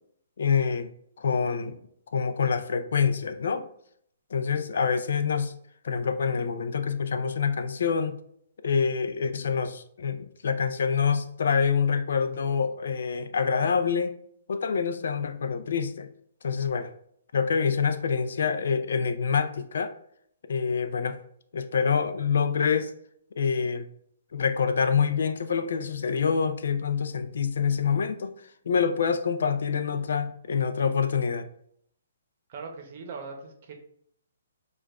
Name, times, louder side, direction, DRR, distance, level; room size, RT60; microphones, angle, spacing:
voice 1, 0.4-0.9 1.2-1.8 2.1-3.6 4.3-5.5 5.8-8.2 8.6-14.1 14.5-16.1 16.4-16.9 17.3-19.9 20.5-21.2 21.5-22.9 23.4-23.9 24.3-28.3 28.7-31.5, left 6 dB, 70° left, 9 dB, 0.4 m, -26 dB
voice 2, 32.5-33.7, right 4 dB, 40° right, 3 dB, 0.8 m, -40 dB
6.4 x 2.3 x 2.4 m, 0.67 s
hypercardioid pair, 160°, 0 cm